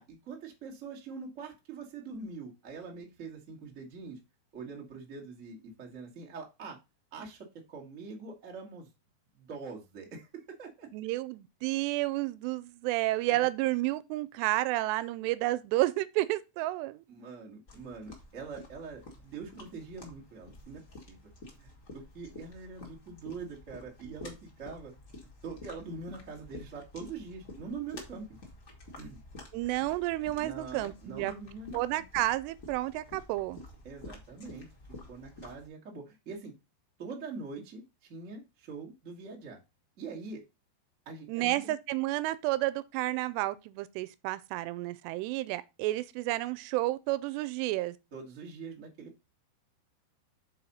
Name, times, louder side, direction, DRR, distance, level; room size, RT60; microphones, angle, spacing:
voice 1, 0.0-4.2 4.5-6.8 7.1-8.9 9.3-10.9 13.3-13.5 17.1-20.8 21.1-21.2 21.6-24.9 25.4-28.4 29.0-29.2 30.4-32.0 33.8-34.7 35.1-36.5 37.0-39.6 40.0-40.4 41.0-41.7 48.1-49.3, right 4 dB, 50° right, 0.9 m, -44 dB
voice 2, 10.9-17.0 29.5-31.3 31.7-33.6 41.3-48.0, right 17 dB, 85° right, 2.7 m, -31 dB
sound 1, 17.7-35.7, left 2 dB, 55° left, 0.8 m, -50 dB
6.3 x 4.3 x 5.4 m
omnidirectional pair, 4.9 m